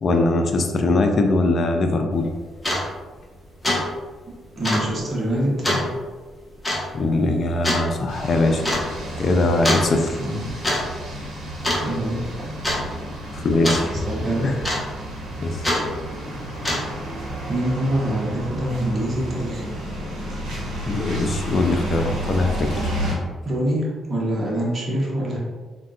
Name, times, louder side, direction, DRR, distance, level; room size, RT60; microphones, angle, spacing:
voice 1, 0.0-2.3 6.9-8.6 9.2-10.2 13.3-14.0 14.4-14.5 15.4-15.6 20.9-22.9, left 2 dB, 55° left, 5 dB, 0.4 m, -21 dB
sound 1, 2.2-2.3 2.6-2.9 3.2-3.4 3.6-4.1 4.6-4.9 5.6-5.9 6.6-6.9 7.6-7.8 8.6-8.9 9.6-9.9 10.4-10.8 11.1-11.3 11.6-12.1 12.6-12.8 13.6-13.9 14.6-15.1 15.6-15.8 16.5-17.0, left 1 dB, 15° left, 0.9 m, -23 dB
voice 2, 4.6-5.8 7.3-7.4 10.2-10.5 11.8-12.5 13.8-14.5 17.5-19.6 23.4-25.4, right 1 dB, 40° right, -4 dB, 0.9 m, -25 dB
sound 2, 8.1-23.1, equal, 75° right, 0.9 m, -31 dB
3.5 x 2.2 x 2.4 m, 1.4 s
supercardioid pair, 55°, 0 cm